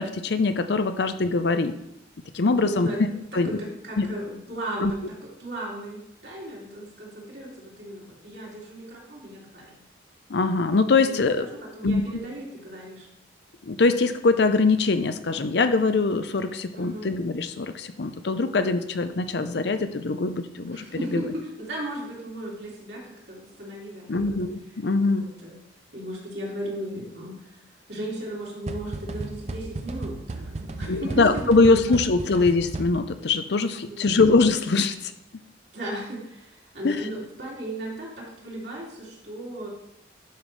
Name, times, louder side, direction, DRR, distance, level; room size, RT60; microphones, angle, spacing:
voice 1, 0.0-1.8 2.3-2.9 3.3-3.6 4.0-4.1 4.8-4.9 10.3-11.5 11.8-12.0 13.6-21.2 24.1-25.3 30.9-35.4 36.8-37.1, left 3 dB, 65° left, 10 dB, 0.6 m, -23 dB
voice 2, 2.6-3.1 3.4-5.0 5.4-9.8 11.0-11.3 11.7-13.1 16.8-17.1 20.7-24.5 25.2-25.6 25.9-27.5 27.9-31.9 33.9-34.0 35.7-39.7, right 1 dB, 65° right, -4 dB, 2.7 m, -36 dB
sound 1, 28.7-33.3, right 2 dB, 35° right, 0.5 m, -35 dB
11.0 x 5.5 x 3.3 m, 0.78 s
head